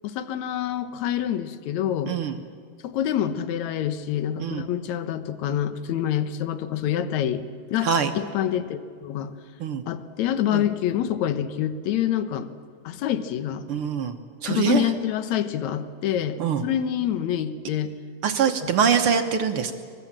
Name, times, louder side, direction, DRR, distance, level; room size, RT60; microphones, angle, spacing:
voice 1, 0.0-2.1 2.8-7.4 7.7-7.9 8.1-9.3 9.9-12.5 12.9-13.6 14.5-17.9 18.6-18.7, left 10 dB, 65° left, 11 dB, 2.2 m, -26 dB
voice 2, 2.1-2.4 4.4-4.6 7.8-8.1 9.6-9.8 10.5-10.6 13.7-14.1 14.4-14.8 16.4-16.6 18.2-19.7, right 7 dB, 65° right, 6 dB, 1.3 m, -23 dB
24.5 x 22.5 x 7.5 m, 2.1 s
omnidirectional pair, 3.9 m